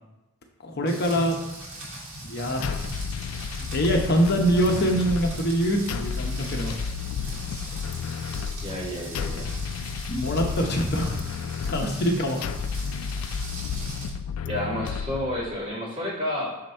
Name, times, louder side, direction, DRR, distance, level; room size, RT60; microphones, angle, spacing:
voice 1, 0.6-1.4 2.3-2.8 3.7-6.8 7.3-7.8 10.1-11.1 11.7-12.5, equal, 50° left, 1 dB, 0.8 m, -24 dB
Rain, 0.9-14.1, right 1 dB, 75° right, 2.0 m, -39 dB
sound 1, 2.6-15.6, left 6 dB, 80° left, 0.3 m, -32 dB
voice 2, 8.6-9.6 14.4-16.6, left 1 dB, 35° right, -7 dB, 2.3 m, -30 dB
6.4 x 3.9 x 4.3 m, 1.0 s
head